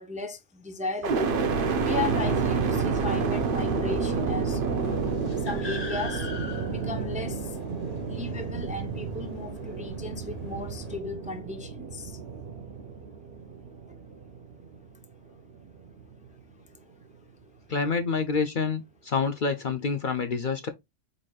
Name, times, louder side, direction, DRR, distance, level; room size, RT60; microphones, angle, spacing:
voice 1, 0.0-1.4 1.8-5.1 5.4-6.3 6.7-7.6 8.1-12.2, left 2 dB, 10° right, 0.5 m, -35 dB
sound 1, 1.0-15.0 15.5-16.3, right 5 dB, 50° right, 0.9 m, -30 dB
sound 2, 4.8-11.0, left 3 dB, 35° left, 1.1 m, -43 dB
voice 2, 17.7-20.7, left 5 dB, 50° left, 0.7 m, -27 dB
4.8 x 4.1 x 2.3 m
omnidirectional pair, 1.3 m